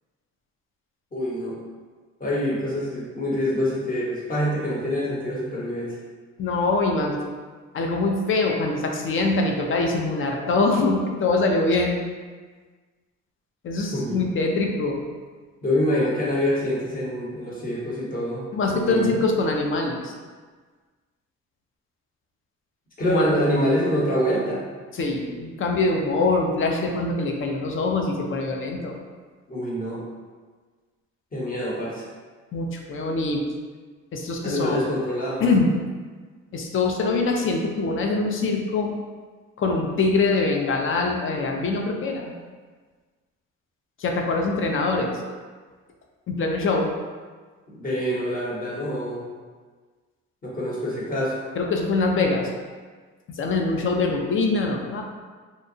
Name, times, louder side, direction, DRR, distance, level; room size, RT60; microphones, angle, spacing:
voice 1, 1.1-1.6 2.2-6.0 13.9-14.3 15.6-19.2 23.0-24.6 29.5-30.0 31.3-32.0 34.4-35.4 47.7-49.3 50.4-51.4, equal, 30° left, -5 dB, 0.9 m, -26 dB
voice 2, 6.4-7.3 7.7-12.0 13.6-15.0 18.5-20.1 23.0-23.3 24.9-29.0 32.5-33.4 34.1-34.8 35.4-35.7 36.5-38.9 39.6-42.3 44.0-45.1 46.3-46.9 51.6-52.4 53.4-55.0, left 3 dB, 45° left, 1 dB, 0.5 m, -23 dB
2.8 x 2.2 x 2.6 m, 1.5 s
cardioid pair, 90°, 30 cm